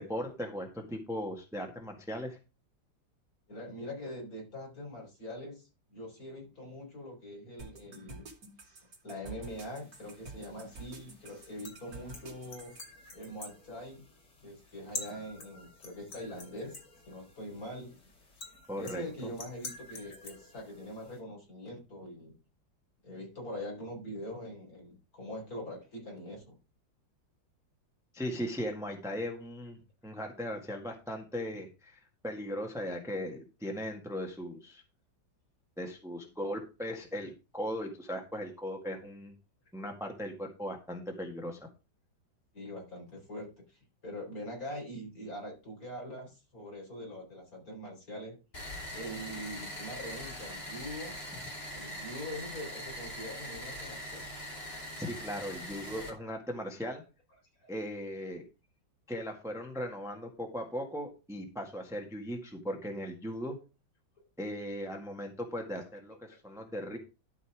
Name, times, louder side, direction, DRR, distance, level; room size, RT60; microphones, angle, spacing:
voice 1, 0.0-2.4 18.7-19.3 28.1-34.8 35.8-39.3 39.7-41.6 54.6-57.0 57.7-58.4 59.1-63.6 64.4-67.0, equal, ahead, 2 dB, 1.6 m, -38 dB
voice 2, 3.5-8.2 9.0-12.8 13.1-14.1 14.4-16.8 17.0-18.0 18.7-22.4 23.0-26.6 42.5-48.4 48.9-51.2 51.7-54.2 57.6-57.7 66.3-66.4, equal, 45° left, 0 dB, 4.6 m, -43 dB
sound 1, 7.6-12.8, right 2 dB, 50° right, 3.0 m, -48 dB
sound 2, 9.4-21.2, left 3 dB, 65° left, 3.5 m, -49 dB
sound 3, 48.5-56.1, equal, 30° left, 3.1 m, -42 dB
12.5 x 5.4 x 4.8 m, 0.31 s
omnidirectional pair, 2.1 m